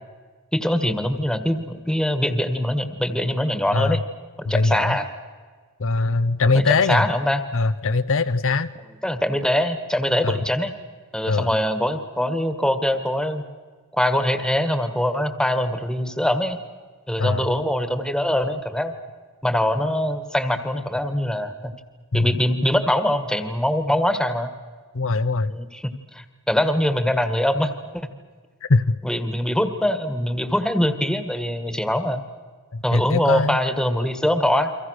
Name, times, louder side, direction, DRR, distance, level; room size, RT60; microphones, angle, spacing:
voice 1, 0.5-4.0 4.5-5.1 6.5-7.4 9.0-10.7 11.1-13.4 13.9-16.6 17.1-18.9 19.4-21.5 22.1-24.5 25.5-25.8 26.1-28.1 29.0-32.2 32.8-34.7, left 1 dB, 5° left, 9 dB, 1.7 m, -23 dB
voice 2, 4.5-5.0 5.8-7.1 7.5-8.7 10.2-10.4 11.3-11.5 17.2-17.5 22.1-22.3 24.9-25.5 28.7-29.0 32.7-33.6, left 3 dB, 65° left, 11 dB, 0.8 m, -21 dB
29.5 x 24.0 x 6.5 m, 1.5 s
head